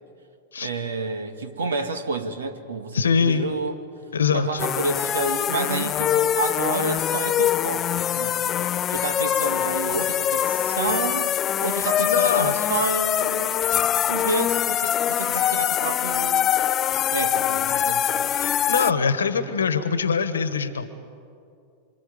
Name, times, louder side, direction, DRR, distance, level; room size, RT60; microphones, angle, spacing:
voice 1, 0.6-3.8 4.3-8.6 8.9-11.3 11.6-13.7 14.1-16.5 17.1-18.3, right 3 dB, 85° right, 8 dB, 1.7 m, -29 dB
voice 2, 2.9-3.5 4.1-4.6 12.0-12.6 18.3-20.9, left 6 dB, 85° left, 12 dB, 1.3 m, -23 dB
sound 1, 4.6-18.9, left 10 dB, 35° left, 0.4 m, -23 dB
27.5 x 25.5 x 5.2 m, 2.5 s
hypercardioid pair, 100°, 0 cm